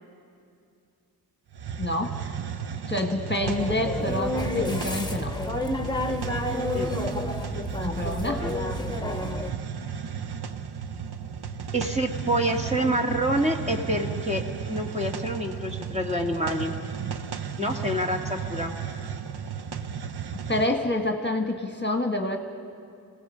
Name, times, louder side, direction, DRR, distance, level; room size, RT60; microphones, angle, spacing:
Hiss, 1.5-20.8, right 7 dB, 80° right, 0.7 m, -34 dB
voice 1, 1.8-2.1 2.9-5.4 7.8-8.5 20.3-22.4, left 1 dB, 30° left, 3 dB, 1.4 m, -27 dB
sound 1, 3.4-9.5, left 2 dB, 10° left, 1.3 m, -30 dB
voice 2, 11.7-14.4 14.7-16.7 17.6-18.7, right 1 dB, 15° right, 1 dB, 1.8 m, -27 dB
27.5 x 17.5 x 5.7 m, 2.4 s
wide cardioid pair, 50°, 38 cm